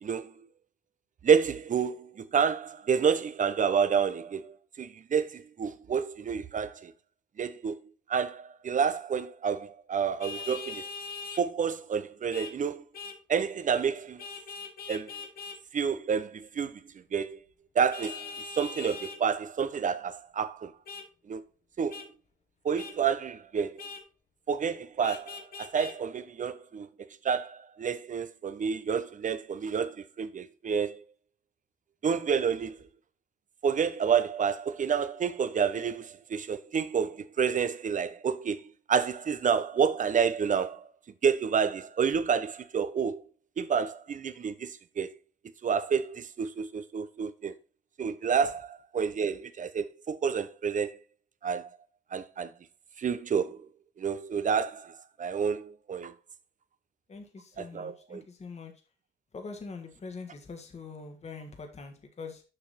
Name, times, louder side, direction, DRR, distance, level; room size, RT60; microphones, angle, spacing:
voice 1, 0.0-0.5 1.2-6.9 7.4-7.8 8.1-10.8 11.4-12.8 13.3-14.2 14.9-15.1 15.7-16.8 17.1-17.4 17.7-18.3 18.6-20.7 21.3-21.4 21.8-22.0 22.6-23.8 24.5-26.9 27.2-31.0 32.0-32.8 33.6-40.9 41.2-43.2 43.6-45.1 45.6-47.5 48.0-51.0 51.4-51.7 52.1-52.5 53.0-53.7 54.0-56.1 57.6-58.2, right 6 dB, 40° right, 0.8 m, -29 dB
Vehicle horn car horn honking, 10.2-11.4 12.3-12.5 12.9-13.2 14.2-15.6 17.9-19.2 20.9-21.1 21.9-22.1 22.8-23.0 23.8-24.0 25.0-26.0, left 5 dB, 50° left, 1.4 m, -41 dB
voice 2, 57.1-58.7 59.3-62.4, left 4 dB, 35° left, 1.5 m, -43 dB
6.7 x 5.9 x 4.1 m
cardioid pair, 90°, 20 cm